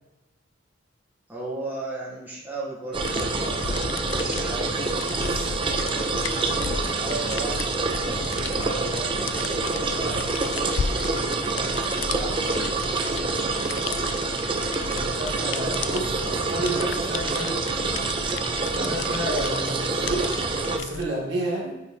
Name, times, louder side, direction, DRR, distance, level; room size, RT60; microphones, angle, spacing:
voice 1, 1.3-4.8 5.7-6.3 6.8-7.7 8.1-12.9, right 2 dB, 10° right, -7 dB, 1.5 m, -37 dB
sound 1, 2.9-21.0, left 5 dB, 70° left, 0.4 m, -35 dB
sound 2, 2.9-20.8, right 3 dB, 25° right, 0.5 m, -27 dB
voice 2, 15.2-17.6 18.7-21.8, right 1 dB, 60° right, -5 dB, 2.2 m, -30 dB
8.6 x 4.4 x 3.2 m, 1.0 s
head